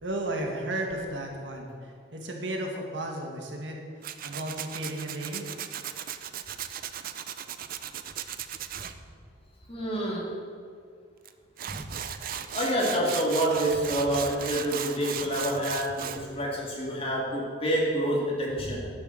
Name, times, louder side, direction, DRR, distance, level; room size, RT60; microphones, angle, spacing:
voice 1, 0.0-3.8 4.2-5.5, right 1 dB, 70° right, 1 dB, 1.7 m, -34 dB
Tools, 4.0-8.9 11.3-11.4 11.6-16.2, right 9 dB, 50° right, 0.5 m, -36 dB
voice 2, 9.7-10.3 11.7-11.8 12.5-18.9, right 1 dB, 30° left, -3 dB, 2.1 m, -28 dB
10.5 x 6.9 x 6.4 m, 2.2 s
head